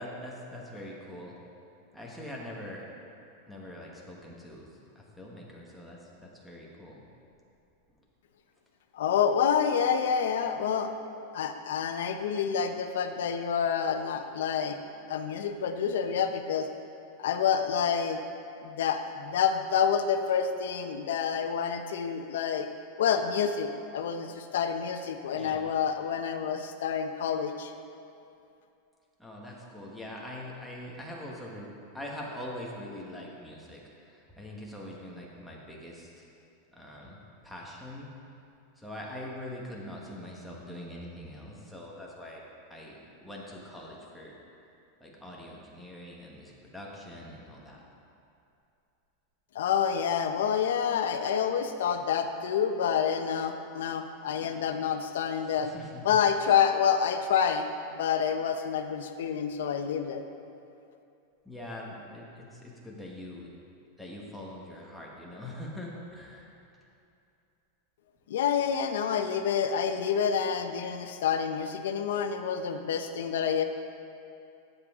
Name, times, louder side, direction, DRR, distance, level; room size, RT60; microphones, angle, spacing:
voice 1, 0.0-1.4 1.9-2.9 3.5-4.7 4.9-7.0 25.3-25.6 29.2-36.2 36.7-37.2 37.4-38.1 38.8-42.4 42.7-44.3 45.0-47.8 55.4-56.1 61.4-63.5 64.0-66.5, left 1 dB, ahead, -4 dB, 1.3 m, -43 dB
voice 2, 8.9-10.9 11.3-14.8 15.1-16.7 17.2-18.2 18.6-22.7 23.0-27.7 49.5-55.7 56.0-57.6 57.9-60.2 68.3-73.6, left 7 dB, 85° left, 7 dB, 0.7 m, -28 dB
12.5 x 7.6 x 3.7 m, 2.6 s
supercardioid pair, 165°, 0 cm